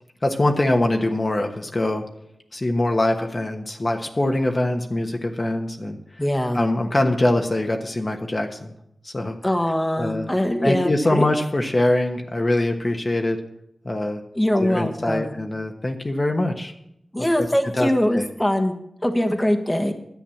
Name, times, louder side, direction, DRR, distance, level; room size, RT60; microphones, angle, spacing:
voice 1, 0.2-2.0 2.5-6.0 6.5-8.7 9.0-9.3 10.0-10.3 10.6-13.4 13.8-14.2 14.5-16.7 17.4-17.5 17.8-18.2, left 1 dB, 35° left, 3 dB, 1.3 m, -23 dB
voice 2, 6.2-6.6 9.4-11.3 14.3-15.3 17.1-18.7 19.0-19.9, left 1 dB, 15° left, 6 dB, 1.4 m, -22 dB
10.5 x 8.1 x 7.1 m, 0.76 s
cardioid pair, 50°, 0 cm